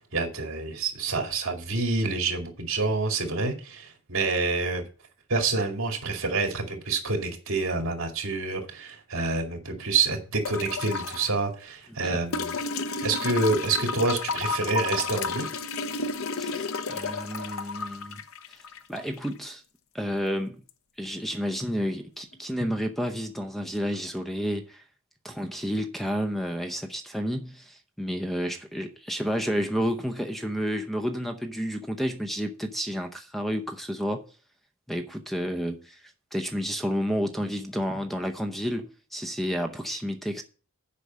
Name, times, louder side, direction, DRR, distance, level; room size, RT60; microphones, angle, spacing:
voice 1, 0.0-4.8 5.3-12.5 13.0-15.5, right 3 dB, 65° right, 2.4 m, -27 dB
sound 1, 10.4-11.3 12.3-19.3 20.7-20.8, left 4 dB, 65° left, 0.7 m, -32 dB
voice 2, 16.4-18.2 18.5-19.6 19.9-20.6 21.0-24.8 25.2-34.2 34.9-40.4, equal, ahead, 0.7 m, -31 dB
8.3 x 5.3 x 7.4 m
head